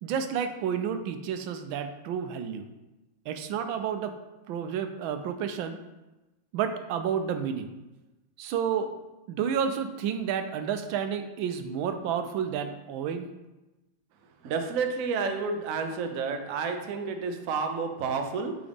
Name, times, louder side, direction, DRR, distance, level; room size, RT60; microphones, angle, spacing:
voice 1, 0.0-2.7 3.3-4.1 4.5-5.8 6.5-7.7 8.4-8.9 9.3-13.3, right 7 dB, 80° right, 8 dB, 1.3 m, -30 dB
voice 2, 14.4-18.6, right 5 dB, 65° right, 5 dB, 0.8 m, -30 dB
8.6 x 3.9 x 3.5 m, 1.1 s
omnidirectional pair, 2.2 m